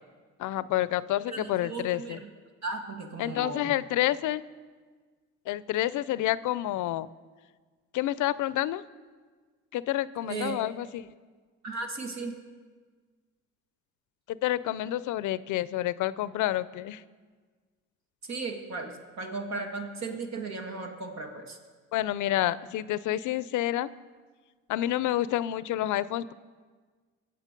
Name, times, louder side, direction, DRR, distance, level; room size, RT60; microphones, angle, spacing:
voice 1, 0.4-2.2 3.2-4.4 5.5-7.1 7.9-8.8 9.7-11.0 14.3-17.0 21.9-23.9 24.7-26.3, left 14 dB, 80° left, 17 dB, 0.5 m, -29 dB
voice 2, 1.3-2.3 2.6-3.8 10.3-10.7 11.6-12.4 18.3-21.6, right 3 dB, 60° right, 3 dB, 2.1 m, -36 dB
21.0 x 8.1 x 5.2 m, 1.5 s
cardioid pair, 90°, 30 cm